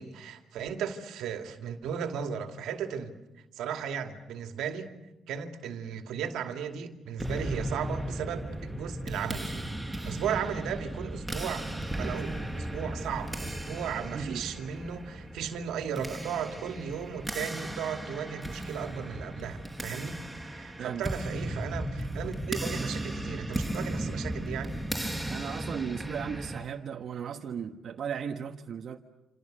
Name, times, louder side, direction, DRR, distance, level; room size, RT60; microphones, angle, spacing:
voice 1, 0.0-3.2 3.5-4.9 5.3-9.6 9.9-11.7 11.9-20.2 20.4-24.7, right 7 dB, 85° right, 2.4 m, -36 dB
sound 1, 7.2-26.6, right 1 dB, 5° right, 5.3 m, -36 dB
voice 2, 14.1-14.5 20.8-21.1 25.3-29.0, right 7 dB, 60° right, 1.3 m, -36 dB
27.5 x 27.5 x 6.7 m
cardioid pair, 90°, 0 cm